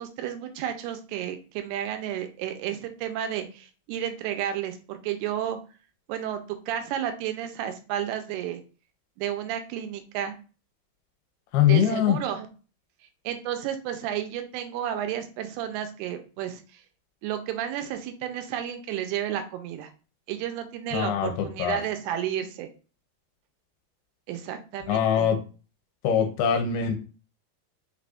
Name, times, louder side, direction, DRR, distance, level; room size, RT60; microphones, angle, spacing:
voice 1, 0.0-5.6 6.1-8.6 9.2-10.3 11.6-12.5 13.3-16.8 17.2-19.9 20.3-22.7 24.3-25.3, right 10 dB, 85° right, 7 dB, 2.6 m, -32 dB
voice 2, 11.5-12.2 20.9-21.8 24.9-25.4 26.0-26.9, left 9 dB, 80° left, 4 dB, 2.5 m, -23 dB
5.9 x 3.3 x 2.5 m, 0.35 s
omnidirectional pair, 4.6 m